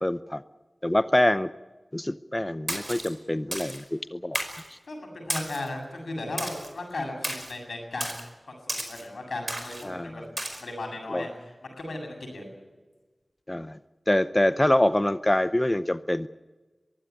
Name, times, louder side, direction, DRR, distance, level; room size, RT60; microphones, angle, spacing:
voice 1, 0.0-0.4 0.8-1.5 1.9-4.4 9.8-10.2 11.1-11.2 13.5-13.8 14.1-16.3, left 1 dB, 20° left, 13 dB, 0.6 m, -25 dB
Splash splatter, 2.7-3.1 3.5-3.8 4.3-4.7 5.3-5.7 6.4-6.7 7.2-7.5 8.0-8.2 8.7-9.0 9.5-9.8 10.4-10.6, right 1 dB, 25° right, 5.1 m, -33 dB
voice 2, 4.9-8.1 8.5-10.2 10.6-12.4, left 2 dB, 90° left, 2 dB, 7.6 m, -36 dB
22.5 x 16.0 x 9.8 m, 1.3 s
wide cardioid pair, 50°, 0 cm